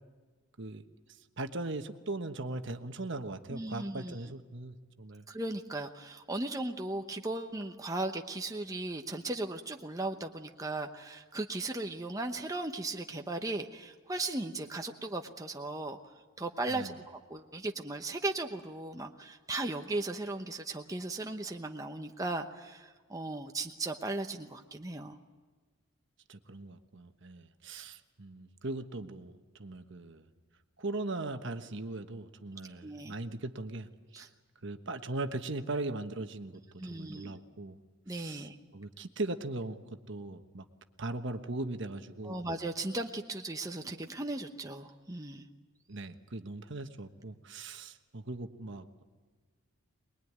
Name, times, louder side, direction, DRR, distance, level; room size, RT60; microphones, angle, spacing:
voice 1, 1.4-5.2 16.7-16.9 26.3-30.2 30.8-33.9 34.1-34.3 34.6-37.8 38.1-38.5 38.7-40.6 41.0-42.4 45.9-49.0, right 2 dB, 55° right, 8 dB, 1.2 m, -39 dB
voice 2, 3.5-4.2 5.3-16.0 16.4-25.2 32.8-33.1 34.1-34.3 36.8-37.4 38.1-38.6 42.2-45.5, right 2 dB, 15° right, 4 dB, 0.9 m, -37 dB
23.0 x 21.5 x 9.5 m, 1.4 s
head